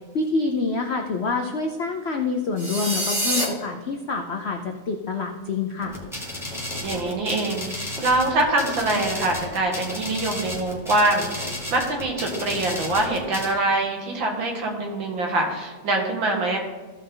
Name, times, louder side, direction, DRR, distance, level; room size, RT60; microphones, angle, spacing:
voice 1, 0.1-6.0, left 4 dB, 70° left, 3 dB, 0.6 m, -27 dB
sound 1, 2.6-3.4, right 1 dB, 45° right, 2.1 m, -25 dB
sound 2, 5.8-13.5, left 1 dB, ahead, 2.1 m, -33 dB
voice 2, 6.8-16.6, right 2 dB, 75° right, 1 dB, 2.5 m, -24 dB
15.0 x 5.5 x 3.9 m, 1.3 s
omnidirectional pair, 2.1 m